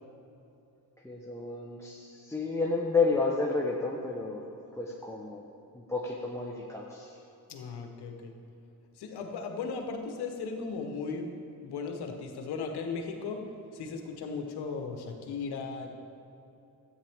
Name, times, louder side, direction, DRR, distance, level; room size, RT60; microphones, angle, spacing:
voice 1, 1.0-4.4 4.7-5.4 5.7-7.2, left 3 dB, 5° left, -2 dB, 1.0 m, -31 dB
voice 2, 7.5-8.3 9.0-11.3 11.6-13.4 13.7-15.9, left 4 dB, 75° left, 4 dB, 1.2 m, -36 dB
13.0 x 9.0 x 3.6 m, 2.8 s
supercardioid pair, 65°, 39 cm